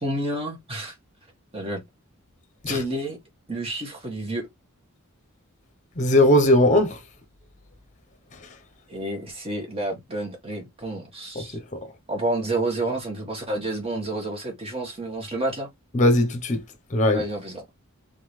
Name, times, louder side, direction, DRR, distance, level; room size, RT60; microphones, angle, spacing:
voice 1, 0.0-1.0 1.5-1.8 2.7-3.2 3.5-4.5 8.9-11.6 12.1-15.7 17.1-17.7, right 1 dB, 25° right, 1.6 m, -29 dB
voice 2, 6.0-7.0 15.9-16.6 16.9-17.2, left 1 dB, 35° left, 0.9 m, -18 dB
3.8 x 3.8 x 3.2 m
head